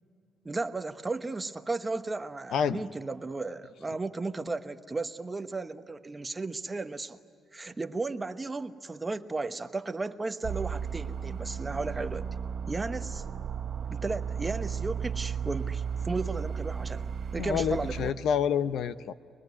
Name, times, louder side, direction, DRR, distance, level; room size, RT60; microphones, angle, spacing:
voice 1, 0.4-7.2 7.5-12.2 12.7-13.2 13.9-18.1, right 3 dB, 20° right, 9 dB, 1.1 m, -34 dB
voice 2, 2.5-2.8 17.4-19.1, left 8 dB, 75° left, 13 dB, 0.7 m, -28 dB
sound 1, 10.4-18.1, right 7 dB, 50° right, 0.9 m, -34 dB
24.5 x 21.0 x 9.6 m, 2.3 s
cardioid pair, 90°, 0 cm